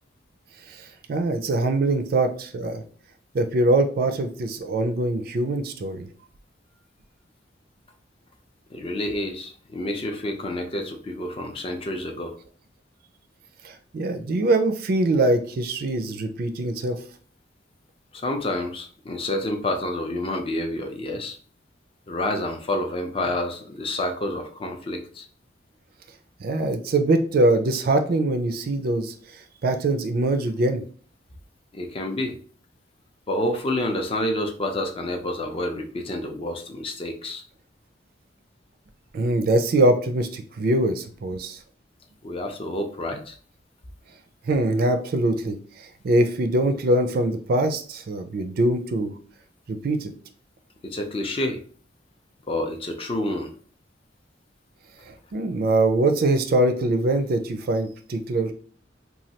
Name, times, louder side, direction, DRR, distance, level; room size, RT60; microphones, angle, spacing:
voice 1, 0.7-2.8 3.3-6.1 13.6-17.0 26.4-29.1 29.6-30.8 39.1-41.6 44.5-49.1 49.7-50.1 55.1-58.5, right 2 dB, 50° right, 7 dB, 0.4 m, -23 dB
voice 2, 8.7-12.4 18.1-21.4 22.1-25.2 31.7-32.4 33.3-37.4 42.2-43.4 50.8-51.6 52.5-53.5, left 1 dB, 30° left, 4 dB, 0.4 m, -28 dB
3.1 x 2.3 x 2.8 m, 0.43 s
head